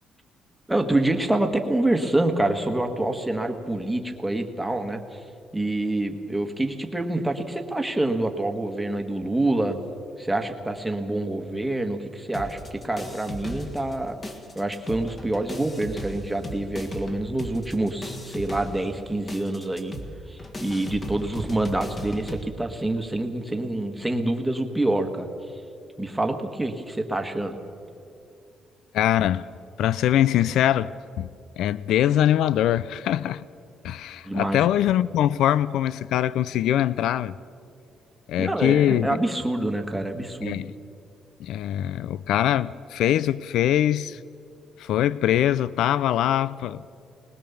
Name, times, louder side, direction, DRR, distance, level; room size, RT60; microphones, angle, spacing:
voice 1, 0.7-5.2 5.5-9.8 10.2-14.2 14.5-19.9 20.3-25.3 26.0-27.6 34.3-34.8 38.4-40.6, right 1 dB, 5° right, 1.4 m, -26 dB
sound 1, 12.3-14.0 14.2-22.4, equal, 25° left, 1.7 m, -37 dB
voice 2, 28.9-29.5 29.8-31.3 31.6-33.5 33.8-37.4 38.3-39.2 40.4-40.7 41.4-44.2 44.8-46.8, left 11 dB, 75° left, 0.4 m, -23 dB
21.0 x 20.0 x 7.1 m
cardioid pair, 170°, 0 cm